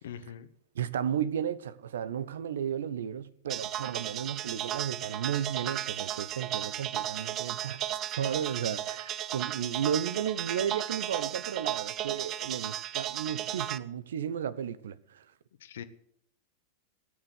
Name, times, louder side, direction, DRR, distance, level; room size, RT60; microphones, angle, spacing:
voice 1, 0.0-0.5 15.6-15.8, left 8 dB, 60° left, 1.5 m, -42 dB
voice 2, 0.7-7.8 8.2-15.2, right 9 dB, 60° right, 0.9 m, -34 dB
sound 1, 3.5-13.8, right 12 dB, 35° right, 0.8 m, -35 dB
17.0 x 9.5 x 8.1 m
figure-of-eight pair, 90°, 0 cm